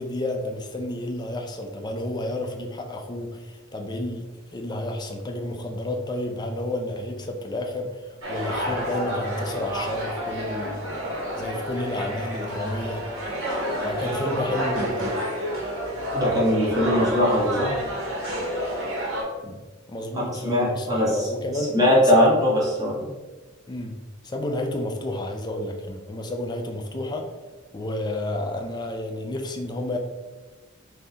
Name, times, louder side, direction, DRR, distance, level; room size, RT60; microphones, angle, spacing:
voice 1, 0.0-10.9 11.4-13.1 13.8-15.1 19.4-19.6 19.9-22.4 23.7-24.0 24.2-27.3 27.7-30.0, left 1 dB, 20° left, 3 dB, 0.5 m, -31 dB
sound 1, 8.2-19.2, equal, 90° right, 1.5 m, -29 dB
voice 2, 16.1-17.7 20.3-21.3 21.7-23.1, left 1 dB, 20° right, -6 dB, 1.3 m, -20 dB
3.9 x 2.8 x 3.8 m, 1.2 s
head